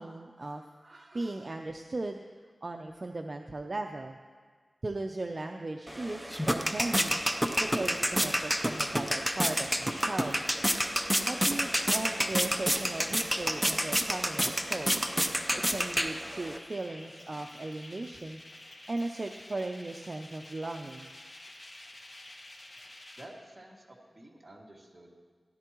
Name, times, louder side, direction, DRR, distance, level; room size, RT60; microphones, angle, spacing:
voice 1, 0.0-2.2 2.6-4.2 4.8-7.2 7.6-10.5 11.3-15.0 15.5-18.4 18.9-21.1, right 2 dB, 45° right, 4 dB, 0.5 m, -37 dB
sound 1, 5.9-16.6, equal, ahead, 0.7 m, -29 dB
sound 2, 7.4-23.3, left 1 dB, 55° left, 1.6 m, -50 dB
voice 2, 23.2-25.1, right 1 dB, 20° right, -3 dB, 2.2 m, -51 dB
17.0 x 11.0 x 3.0 m, 1.5 s
wide cardioid pair, 80°, 0 cm